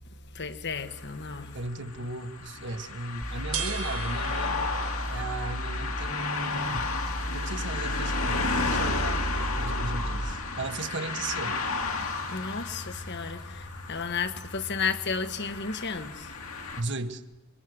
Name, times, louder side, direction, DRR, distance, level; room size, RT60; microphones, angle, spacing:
voice 1, 0.3-1.6 12.3-16.3, left 5 dB, 50° left, 1.5 m, -33 dB
sound 1, 0.8-16.8, left 3 dB, 70° left, 2.7 m, -33 dB
voice 2, 1.5-4.8 5.1-6.9 7.3-11.6 16.8-17.2, right 2 dB, 55° right, 1.5 m, -36 dB
sound 2, 2.6-14.0, right 8 dB, 85° right, 3.0 m, -45 dB
sound 3, 3.2-10.3, equal, 10° right, 1.6 m, -34 dB
26.0 x 24.0 x 8.0 m
head